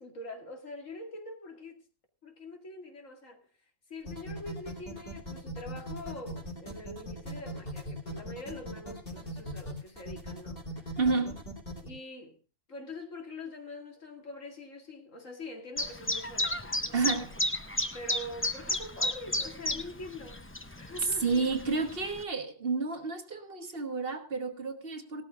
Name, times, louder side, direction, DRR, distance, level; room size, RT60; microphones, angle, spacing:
voice 1, 0.0-1.8 2.2-3.4 3.9-11.0 11.8-12.4 12.7-17.2 17.9-20.4 20.7-21.4, left 2 dB, 75° left, 2.6 m, -44 dB
sound 1, 4.1-11.9, equal, 35° left, 3.1 m, -40 dB
voice 2, 11.0-11.4 16.9-17.3 21.2-25.2, right 4 dB, 45° right, 1.5 m, -30 dB
Chirp tweet, 15.8-22.2, left 1 dB, 15° left, 0.5 m, -33 dB
18.0 x 13.5 x 2.5 m
omnidirectional pair, 1.3 m